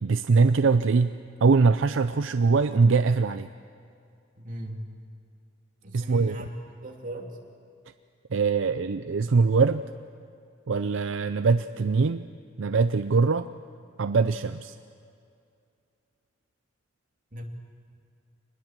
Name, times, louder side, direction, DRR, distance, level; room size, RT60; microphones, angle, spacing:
voice 1, 0.0-1.1 1.4-3.5 5.9-6.4 8.3-9.8 10.7-12.3 12.6-13.5 14.0-14.7, right 4 dB, 75° right, 10 dB, 0.5 m, -22 dB
voice 2, 4.4-4.9 5.8-6.5 6.8-7.4 17.3-17.4, right 1 dB, 45° right, 0 dB, 2.9 m, -38 dB
25.5 x 20.5 x 7.4 m, 2.4 s
head